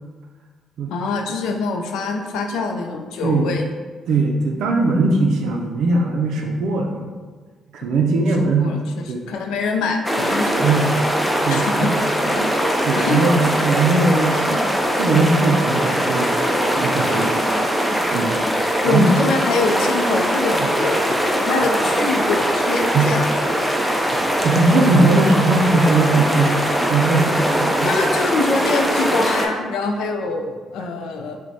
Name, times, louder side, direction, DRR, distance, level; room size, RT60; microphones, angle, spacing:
voice 1, 0.9-3.7 8.0-8.1 8.4-10.9 11.3-11.9 13.0-13.2 18.8-23.7 27.8-31.4, left 3 dB, 90° left, 3 dB, 0.4 m, -24 dB
voice 2, 4.1-7.1 7.7-8.7 9.1-9.2 10.5-10.9 11.3-11.9 12.3-14.6 15.0-16.3 16.7-17.4 18.1-18.4 18.8-19.3 22.8-23.1 24.1-27.9, right 3 dB, 80° right, 1 dB, 0.4 m, -20 dB
sound 1, 10.0-29.5, equal, ahead, 0.5 m, -21 dB
5.8 x 2.2 x 2.7 m, 1.5 s
cardioid pair, 90°, 0 cm